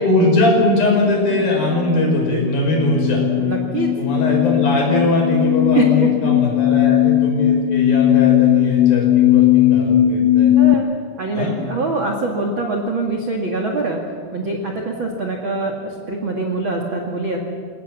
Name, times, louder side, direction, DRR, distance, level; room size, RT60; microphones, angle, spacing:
voice 1, 0.0-3.2 4.0-10.6 11.3-11.6, left 2 dB, 50° left, 0 dB, 7.1 m, -20 dB
sound 1, 1.3-10.7, left 13 dB, 80° left, 2.7 m, -17 dB
voice 2, 3.4-3.9 5.7-6.3 10.6-10.9 11.2-14.0 14.3-17.4, right 3 dB, 45° right, 1 dB, 1.6 m, -24 dB
29.5 x 17.5 x 7.3 m, 2.1 s
omnidirectional pair, 5.3 m